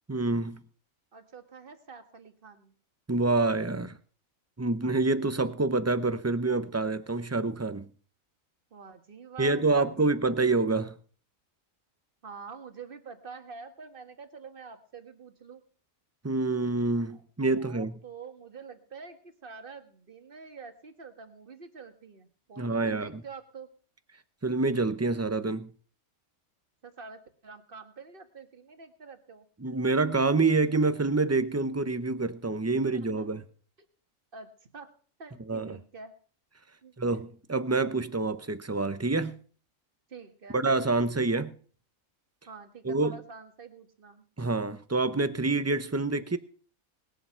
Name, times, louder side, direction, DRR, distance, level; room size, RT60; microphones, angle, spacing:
voice 1, 0.1-0.6 3.1-4.0 4.6-7.9 9.4-10.9 16.2-18.0 22.6-23.1 24.4-25.7 29.6-33.4 35.5-35.8 37.0-39.4 40.5-41.5 42.8-43.2 44.4-46.4, right 3 dB, 15° right, 0.5 m, -27 dB
voice 2, 1.1-2.7 8.7-10.2 12.2-15.6 17.1-17.2 17.5-23.7 26.8-29.5 32.7-33.4 34.3-34.9 35.2-36.2 36.8-36.9 40.1-40.6 42.5-44.2, right 5 dB, 40° right, 1.6 m, -47 dB
20.0 x 7.7 x 5.7 m
omnidirectional pair, 1.4 m